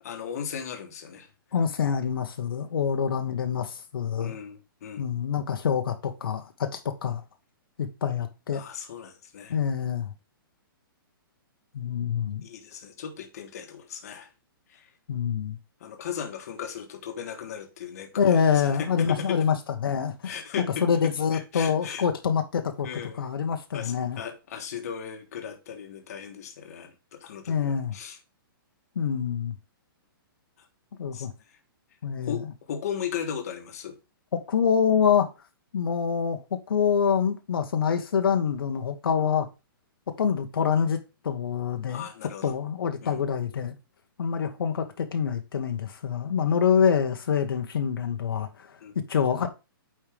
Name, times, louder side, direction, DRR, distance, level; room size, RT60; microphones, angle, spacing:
voice 1, 0.0-1.3 4.2-5.1 8.5-9.6 12.4-14.3 14.7-14.9 15.8-18.3 18.8-19.4 20.2-22.0 22.8-23.2 23.7-28.2 31.1-31.6 32.3-34.0 41.9-42.5 43.0-43.2 48.8-49.0, left 7 dB, 45° left, 1.4 m, -37 dB
voice 2, 1.5-4.4 5.0-7.2 7.8-8.6 9.5-10.1 11.7-12.4 15.1-15.6 18.2-19.6 19.8-20.4 20.8-22.9 23.2-24.2 27.5-27.9 28.9-29.5 31.0-31.3 32.0-32.4 34.3-35.3 35.7-39.5 40.2-42.1 42.4-43.7 44.2-49.5, left 7 dB, 75° left, 1.2 m, -26 dB
8.7 x 4.5 x 3.4 m
hypercardioid pair, 175°, 12 cm